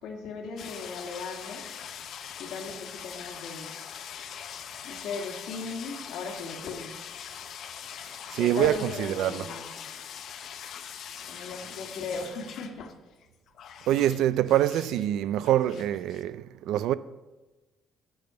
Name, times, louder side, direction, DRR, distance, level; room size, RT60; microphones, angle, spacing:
voice 1, 0.0-1.6 2.4-3.8 4.8-6.9 8.4-9.9 11.3-13.2, left 4 dB, 75° left, 1.6 m, -37 dB
sound 1, 0.6-12.9 13.2-15.1 15.4-16.2, left 8 dB, 55° left, 0.6 m, -42 dB
voice 2, 8.3-9.4 13.9-16.9, right 12 dB, 80° right, 0.3 m, -25 dB
8.6 x 6.1 x 7.5 m
cardioid pair, 160°, 0 cm